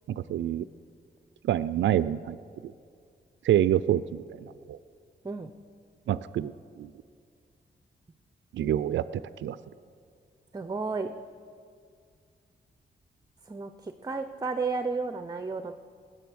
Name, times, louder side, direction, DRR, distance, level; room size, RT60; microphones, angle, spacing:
voice 1, 0.1-0.6 1.4-2.4 2.6-2.7 3.4-4.8 6.1-6.5 6.8-6.9 8.5-9.0 9.4-9.6, right 11 dB, 85° right, 15 dB, 0.4 m, -27 dB
voice 2, 10.5-11.1 13.5-15.8, right 4 dB, 20° right, 9 dB, 0.6 m, -32 dB
20.0 x 7.7 x 6.3 m, 2.2 s
cardioid pair, 80°, 19 cm